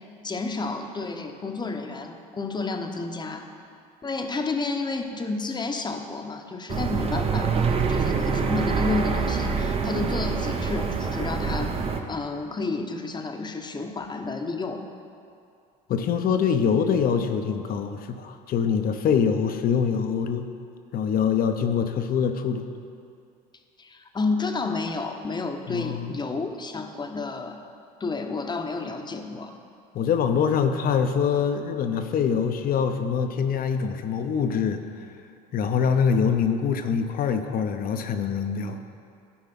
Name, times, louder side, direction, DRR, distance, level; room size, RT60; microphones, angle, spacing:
voice 1, 0.2-3.5 4.0-11.7 12.1-14.8 23.8-27.6 28.0-29.5, left 3 dB, 20° left, 5 dB, 1.0 m, -31 dB
sound 1, 6.7-12.0, right 5 dB, 30° right, 0.9 m, -25 dB
voice 2, 15.9-20.5 20.9-22.7 25.7-26.2 29.9-34.8 35.5-38.8, left 6 dB, 50° left, 7 dB, 0.9 m, -24 dB
12.5 x 4.8 x 6.0 m, 2.4 s
hypercardioid pair, 80°, 19 cm